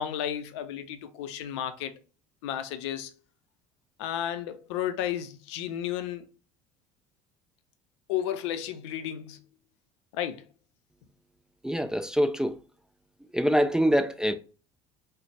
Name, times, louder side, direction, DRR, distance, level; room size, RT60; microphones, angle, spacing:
voice 1, 0.0-1.9 2.4-3.2 4.0-6.3 8.1-9.4 10.1-10.4, left 10 dB, 65° left, 0.5 m, -33 dB
voice 2, 11.6-12.6 13.3-14.3, equal, 5° right, 0.3 m, -24 dB
3.8 x 2.1 x 3.2 m
figure-of-eight pair, 60°, 16 cm